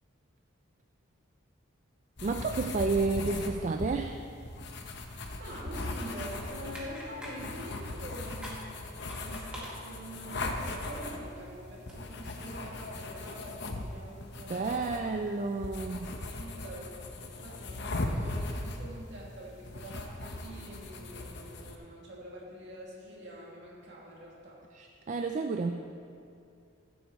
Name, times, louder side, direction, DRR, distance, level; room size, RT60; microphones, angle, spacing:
sound 1, 2.2-21.7, left 2 dB, 55° left, 0.8 m, -39 dB
voice 1, 2.2-4.2 14.4-16.1 24.7-25.7, right 3 dB, 35° right, 5 dB, 0.3 m, -31 dB
voice 2, 5.4-15.0 15.8-16.0 16.3-16.9 17.4-24.6, equal, 60° right, -5 dB, 2.3 m, -45 dB
sound 2, 6.6-12.0, equal, 5° right, 1.7 m, -48 dB
15.5 x 7.8 x 3.1 m, 2.5 s
head